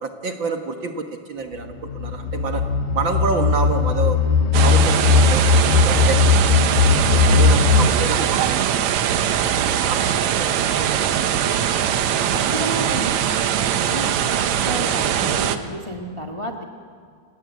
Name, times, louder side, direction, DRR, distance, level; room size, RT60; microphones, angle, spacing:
voice 1, 0.0-2.6 2.9-4.2 4.6-6.6 7.1-9.3 9.8-11.9, right 4 dB, 50° right, 5 dB, 1.6 m, -29 dB
sound 1, 1.6-7.9, left 5 dB, 80° left, 2.9 m, -18 dB
sound 2, 4.5-15.6, right 9 dB, 70° right, 2.2 m, -21 dB
voice 2, 12.3-13.2 13.8-16.6, equal, 30° left, 2 dB, 0.5 m, -31 dB
30.0 x 19.0 x 8.4 m, 2.1 s
omnidirectional pair, 3.6 m